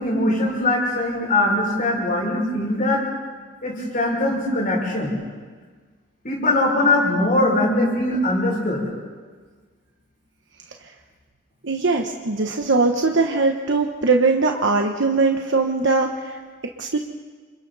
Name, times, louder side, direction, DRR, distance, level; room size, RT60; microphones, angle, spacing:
voice 1, 0.0-3.0 3.6-5.1 6.2-8.8, left 1 dB, 40° left, -4 dB, 6.2 m, -21 dB
voice 2, 11.6-16.4 16.8-17.0, right 3 dB, 60° right, 2 dB, 1.2 m, -20 dB
29.0 x 26.5 x 4.2 m, 1.5 s
head